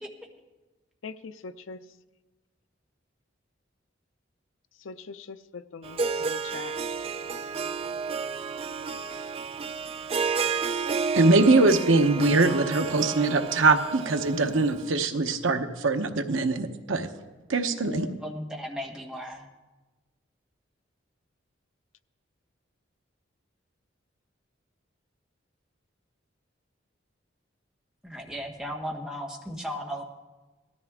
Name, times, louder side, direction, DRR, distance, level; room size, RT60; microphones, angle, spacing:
voice 1, 1.0-1.8 4.8-6.8 17.8-18.2, left 4 dB, 85° left, 13 dB, 0.5 m, -41 dB
Harp, 5.8-14.9, right 5 dB, 30° right, 0.4 m, -31 dB
voice 2, 11.1-17.1 17.5-18.1, right 3 dB, 85° right, 7 dB, 1.0 m, -22 dB
voice 3, 18.2-19.5 28.0-30.0, equal, 5° right, 1 dB, 1.3 m, -36 dB
18.0 x 13.5 x 3.7 m, 1.2 s
head